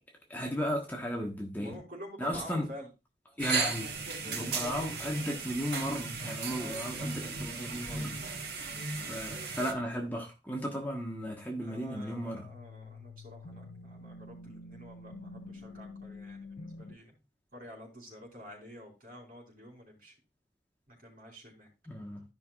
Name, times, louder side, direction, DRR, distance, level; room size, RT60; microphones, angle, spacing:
voice 1, 0.3-1.7 2.2-2.7 3.4-3.9 4.2-8.2 9.1-12.4 21.9-22.2, equal, 10° left, 1.2 m, -35 dB
voice 2, 1.5-2.9 4.3-4.7 6.5-6.9 11.6-17.2 17.5-20.1 20.9-21.7, equal, 50° right, 4.2 m, -48 dB
sound 1, 3.4-9.7, right 4 dB, 70° right, 1.4 m, -36 dB
sound 2, 11.9-17.0, left 3 dB, 75° left, 0.7 m, -47 dB
13.5 x 5.7 x 2.4 m
head